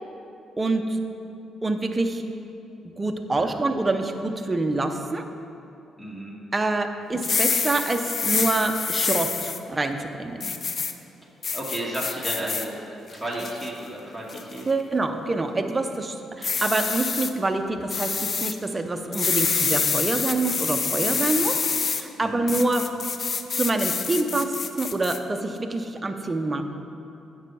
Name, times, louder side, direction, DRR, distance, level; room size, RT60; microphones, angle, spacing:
voice 1, 0.6-1.0 1.6-2.2 3.0-5.2 6.5-10.6 14.7-22.8 23.5-26.6, right 2 dB, 25° right, 5 dB, 0.6 m, -26 dB
voice 2, 6.0-6.3 10.7-10.9 11.5-12.7 13.1-14.7 22.2-22.5, right 1 dB, 5° left, -4 dB, 1.4 m, -33 dB
sound 1, 7.1-9.6 10.4-10.9 11.4-12.7 13.1-13.7 14.3-14.6 16.4-17.3 17.9-18.5 19.1-22.0 22.5-25.2, left 5 dB, 45° left, 0.5 m, -26 dB
8.0 x 5.5 x 5.4 m, 2.7 s
cardioid pair, 90°, 0 cm